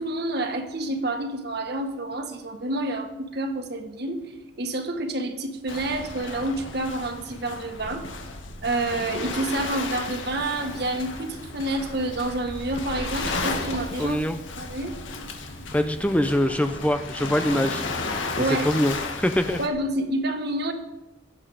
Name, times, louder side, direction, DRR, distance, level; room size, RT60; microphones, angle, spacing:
voice 1, 0.0-4.3 4.6-8.1 8.6-14.2 14.6-14.9 18.4-18.7 19.6-20.7, right 2 dB, 55° right, 5 dB, 1.7 m, -28 dB
Waves surf, 5.7-19.7, left 3 dB, 85° left, 1.7 m, -34 dB
voice 2, 14.0-14.4 15.7-17.8 18.4-19.6, left 1 dB, 5° left, 8 dB, 0.6 m, -24 dB
22.5 x 7.9 x 4.9 m, 0.99 s
head